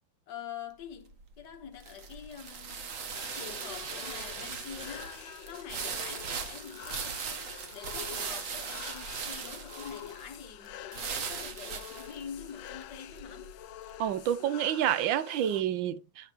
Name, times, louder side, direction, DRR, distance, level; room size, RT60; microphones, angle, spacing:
voice 1, 0.3-3.0 3.3-13.6, left 8 dB, 60° left, 1.7 m, -46 dB
sound 1, 0.8-14.1, right 6 dB, 50° right, 1.3 m, -39 dB
sound 2, 3.1-15.6, left 12 dB, 80° left, 1.4 m, -47 dB
voice 2, 14.0-16.3, right 10 dB, 75° right, 1.4 m, -29 dB
9.5 x 6.0 x 2.9 m
omnidirectional pair, 2.1 m